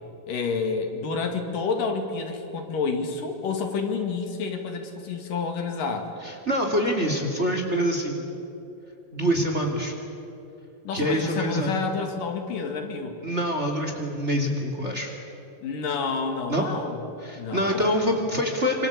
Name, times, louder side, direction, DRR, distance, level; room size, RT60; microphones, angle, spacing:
voice 1, 0.3-6.1 10.8-13.2 15.6-17.0 17.4-17.9, left 4 dB, 75° left, 4 dB, 3.9 m, -29 dB
voice 2, 6.2-8.2 9.1-9.9 10.9-11.8 13.2-15.1 16.5-16.7 17.2-18.9, equal, 20° right, 3 dB, 2.6 m, -25 dB
26.5 x 26.0 x 8.2 m, 2.9 s
omnidirectional pair, 3.9 m